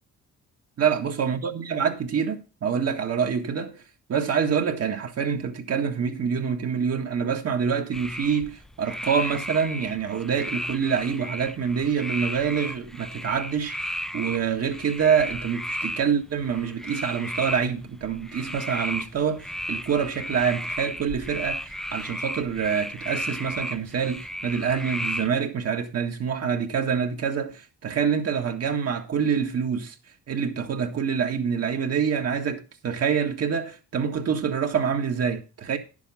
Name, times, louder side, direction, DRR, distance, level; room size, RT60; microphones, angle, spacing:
voice 1, 0.8-3.8 4.1-30.0 30.3-35.8, right 7 dB, 55° right, 1.8 m, -26 dB
sound 1, 7.9-25.3, equal, ahead, 0.7 m, -34 dB
10.0 x 7.1 x 5.5 m
cardioid pair, 90°, 30 cm